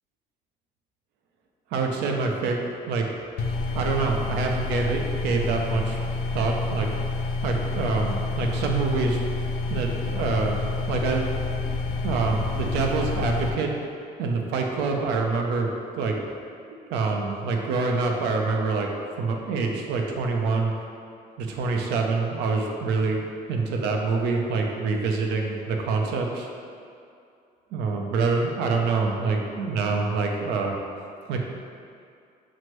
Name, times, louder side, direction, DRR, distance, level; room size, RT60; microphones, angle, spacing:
voice 1, 1.7-2.6 2.9-3.1 3.7-6.0 6.3-6.9 7.4-9.2 9.7-11.5 12.0-13.7 14.2-16.2 16.9-18.9 19.2-20.7 21.4-26.5 27.7-30.7 31.3-31.4, right 4 dB, 90° right, 1 dB, 0.5 m, -26 dB
sound 1, 3.4-13.5, left 3 dB, 70° left, 0.4 m, -28 dB
6.0 x 2.0 x 3.0 m, 2.4 s
cardioid pair, 110°, 17 cm